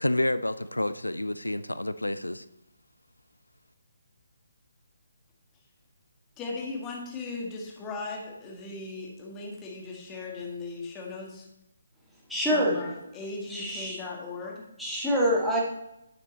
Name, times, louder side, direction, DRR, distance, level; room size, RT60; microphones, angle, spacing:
voice 1, 0.0-2.4, left 1 dB, 85° left, 14 dB, 0.4 m, -29 dB
voice 2, 6.4-11.5 12.5-14.7, left 3 dB, 15° left, -1 dB, 1.9 m, -38 dB
voice 3, 12.3-12.8 13.5-14.0 14.8-15.6, equal, ahead, -5 dB, 2.0 m, -25 dB
9.1 x 6.5 x 4.2 m, 0.84 s
figure-of-eight pair, 140°, 0 cm